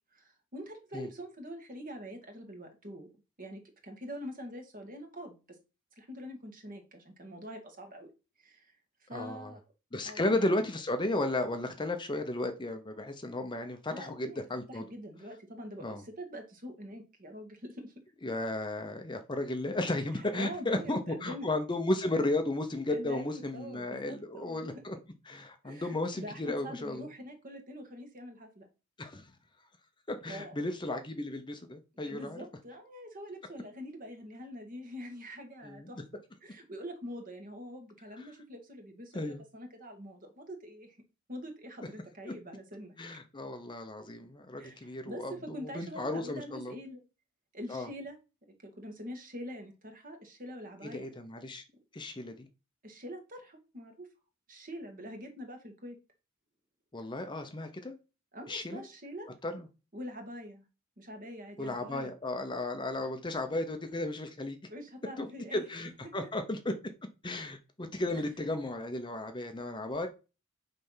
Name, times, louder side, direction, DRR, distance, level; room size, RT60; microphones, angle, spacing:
voice 1, 0.1-3.1 3.4-5.6 6.0-8.1 8.4-8.7 9.1-9.6 10.0-10.7 13.9-14.4 14.7-17.9 20.2-21.5 22.9-24.7 25.6-28.7 30.3-30.6 32.0-41.0 41.3-42.9 44.6-47.0 47.5-48.2 48.6-51.1 52.8-54.1 54.5-56.0 58.3-59.3 59.9-60.7 61.0-62.1 64.7-65.6 66.0-66.1, equal, 40° right, 1.7 m, -44 dB
voice 2, 9.1-9.5 9.9-14.8 15.8-16.0 18.2-25.0 25.3-27.1 29.0-29.3 30.1-32.4 35.6-36.0 38.1-38.2 39.1-39.4 42.3-42.4 43.0-45.3 45.7-46.7 47.7-47.9 50.8-51.6 51.9-52.5 56.9-57.9 58.5-58.8 59.4-59.7 61.6-64.6 65.2-66.7 67.2-70.1, left 2 dB, 20° left, 0.8 m, -34 dB
8.9 x 3.4 x 5.6 m
head